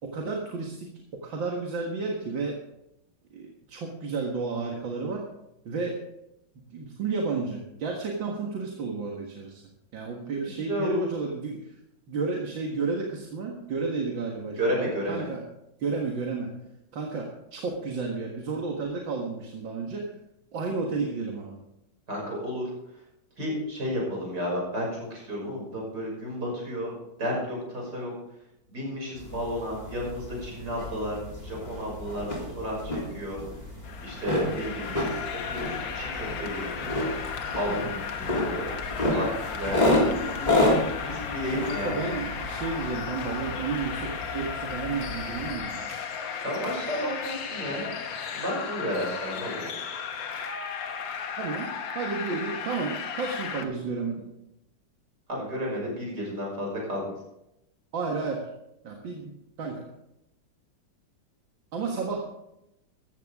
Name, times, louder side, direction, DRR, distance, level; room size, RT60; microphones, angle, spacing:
voice 1, 0.0-2.6 3.3-5.2 5.7-6.0 6.7-9.6 9.9-11.8 12.1-15.5 15.8-16.5 16.9-20.1 20.5-21.6 41.8-46.0 51.4-51.7 52.0-54.3 57.9-58.5 58.8-59.8 61.7-62.3, right 4 dB, 80° right, 0 dB, 2.4 m, -32 dB
voice 2, 10.7-11.0 14.6-15.2 22.1-22.7 23.4-26.9 27.2-28.1 28.7-32.3 32.6-32.7 33.1-33.4 34.0-34.9 35.5-36.8 37.6-38.6 39.0-41.9 46.4-47.9 48.3-49.7 55.3-57.1, equal, 60° right, -2 dB, 6.9 m, -32 dB
sound 1, 29.2-45.7, left 1 dB, 20° left, 3.3 m, -31 dB
sound 2, 33.8-53.7, left 6 dB, 80° left, 1.9 m, -35 dB
15.0 x 14.5 x 3.7 m, 0.85 s
omnidirectional pair, 2.0 m